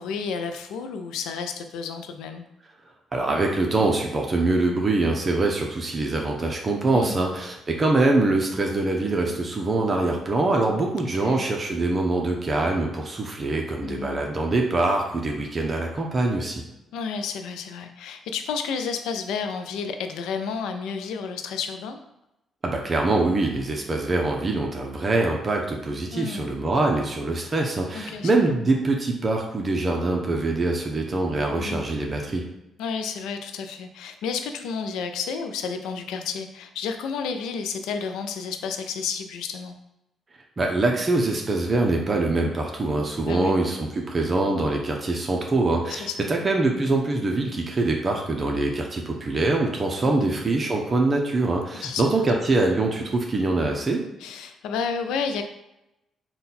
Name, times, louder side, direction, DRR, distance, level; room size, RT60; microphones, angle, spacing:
voice 1, 0.0-2.4 6.9-7.4 11.2-11.4 13.8-14.2 16.9-22.0 26.1-26.5 27.9-28.3 31.5-31.8 32.8-39.7 43.2-43.5 45.9-46.3 50.0-50.3 51.8-52.0 54.2-55.4, left 6 dB, 90° left, 7 dB, 0.4 m, -31 dB
voice 2, 3.1-16.6 22.6-32.4 40.6-54.0, right 2 dB, 35° right, 1 dB, 0.6 m, -24 dB
3.8 x 2.2 x 4.1 m, 0.88 s
cardioid pair, 90°, 0 cm